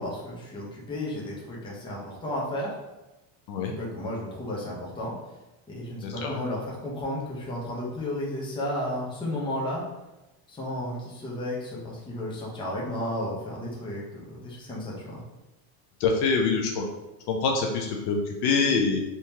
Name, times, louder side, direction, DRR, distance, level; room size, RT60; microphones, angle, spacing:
voice 1, 0.0-2.8 3.6-5.1 5.7-9.8 10.5-15.2, left 1 dB, 10° left, -5 dB, 0.7 m, -33 dB
voice 2, 6.0-6.4 16.0-16.8 17.3-19.0, left 4 dB, 55° left, 1 dB, 0.6 m, -25 dB
3.6 x 2.8 x 2.8 m, 1.0 s
cardioid pair, 140°, 47 cm